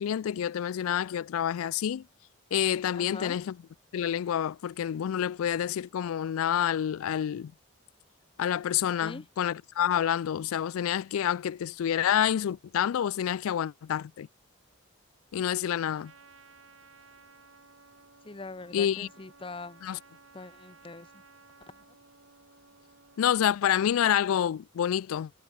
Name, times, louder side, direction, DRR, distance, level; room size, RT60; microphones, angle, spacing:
voice 1, 0.0-2.0 2.5-3.5 3.9-7.5 8.4-14.3 15.3-16.1 18.7-19.1 19.8-20.0 23.2-25.3, left 9 dB, 80° left, 0.3 m, -28 dB
voice 2, 3.0-3.4 9.0-9.3 18.2-19.8 20.3-21.1 21.7-21.8, left 3 dB, 25° left, 0.6 m, -42 dB
Trumpet, 16.0-23.5, right 4 dB, 70° right, 4.4 m, -57 dB
head